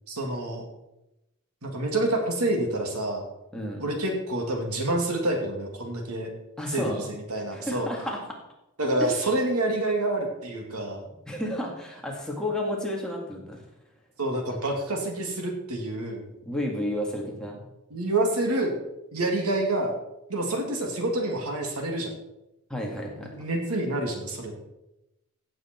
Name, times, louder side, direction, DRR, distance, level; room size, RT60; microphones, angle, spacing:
voice 1, 0.1-0.6 1.6-3.3 3.8-6.3 6.7-7.9 8.8-11.0 14.2-16.3 17.9-18.8 19.1-19.9 20.3-22.1 23.2-24.6, right 1 dB, 85° right, 2 dB, 2.5 m, -28 dB
voice 2, 3.5-3.8 6.6-7.1 7.5-8.2 9.0-9.2 11.3-13.6 16.5-17.6 22.7-23.3, left 1 dB, 5° left, -2 dB, 2.2 m, -31 dB
16.0 x 8.0 x 4.5 m, 0.92 s
head